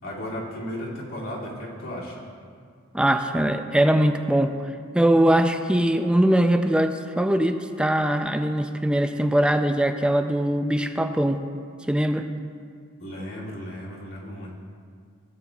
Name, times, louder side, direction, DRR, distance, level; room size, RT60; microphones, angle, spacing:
voice 1, 0.0-2.2 13.0-14.5, equal, 85° left, -6 dB, 2.6 m, -35 dB
voice 2, 2.9-4.5 4.9-11.4 11.9-12.3, right 1 dB, 5° right, 7 dB, 0.4 m, -21 dB
16.5 x 9.1 x 2.4 m, 2.1 s
head